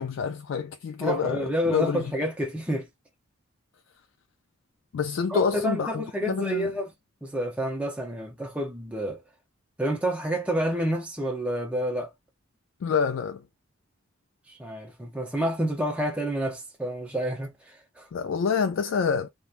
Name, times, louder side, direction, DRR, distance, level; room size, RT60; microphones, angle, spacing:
voice 1, 0.0-2.1 4.9-6.7 12.8-13.4 18.1-19.3, left 6 dB, 65° left, 0.3 m, -27 dB
voice 2, 1.0-2.9 5.3-6.9 7.2-9.2 9.8-12.1 14.5-18.1, equal, 5° right, 0.6 m, -29 dB
2.9 x 2.2 x 2.4 m
head